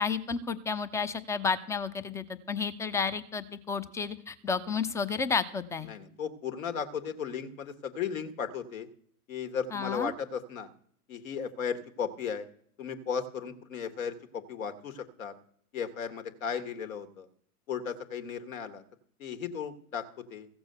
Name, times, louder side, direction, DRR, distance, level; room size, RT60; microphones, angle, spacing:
voice 1, 0.0-5.9 9.7-10.1, left 5 dB, 5° left, 12 dB, 0.5 m, -31 dB
voice 2, 5.8-8.9 9.3-10.7 11.1-12.5 12.8-15.3 15.7-17.3 17.7-18.8 19.2-20.5, left 7 dB, 60° left, 8 dB, 1.6 m, -35 dB
15.5 x 7.0 x 6.7 m, 0.64 s
figure-of-eight pair, 95°, 45 cm